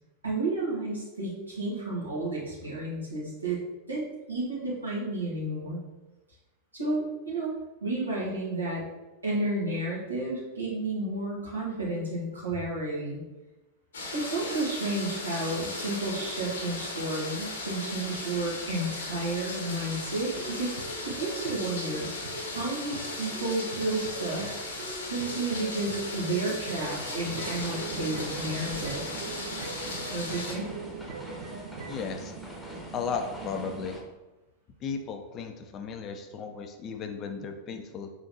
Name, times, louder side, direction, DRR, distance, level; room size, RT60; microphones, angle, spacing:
voice 1, 0.2-3.6 3.9-5.8 6.7-7.5 7.8-8.8 9.2-13.2 14.1-20.7 21.2-22.1 22.5-24.5 24.8-29.1 30.1-30.7, right 2 dB, 80° right, -6 dB, 1.5 m, -31 dB
sound 1, 13.9-30.5, left 2 dB, 65° left, 0.9 m, -37 dB
sound 2, 20.4-32.1, right 3 dB, 60° right, 0.6 m, -43 dB
sound 3, 24.8-34.0, right 2 dB, ahead, 1.0 m, -42 dB
voice 2, 31.9-32.3 32.9-34.0 34.8-38.1, left 6 dB, 30° left, 6 dB, 0.5 m, -35 dB
5.0 x 3.8 x 2.8 m, 1.1 s
figure-of-eight pair, 90°, 0 cm